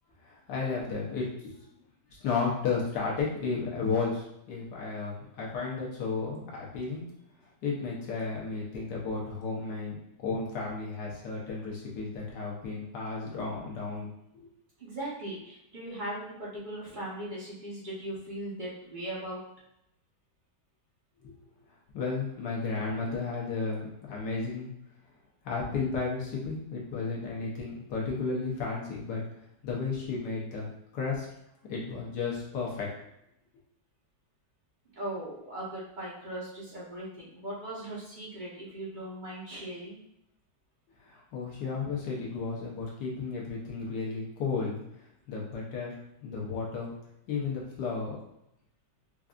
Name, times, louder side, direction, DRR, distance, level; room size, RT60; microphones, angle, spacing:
voice 1, 0.2-1.6 2.2-7.0 7.6-14.1 14.4-14.5 21.2-21.3 21.9-24.7 25.4-29.2 29.6-30.7 30.9-31.3 31.7-32.9 41.1-44.8 45.3-45.9 46.2-46.9 47.3-48.2, left 4 dB, 75° left, -3 dB, 1.6 m, -33 dB
voice 2, 14.8-19.4 34.9-40.0, right 1 dB, 30° right, -7 dB, 1.0 m, -39 dB
4.6 x 2.6 x 2.5 m, 0.80 s
omnidirectional pair, 1.9 m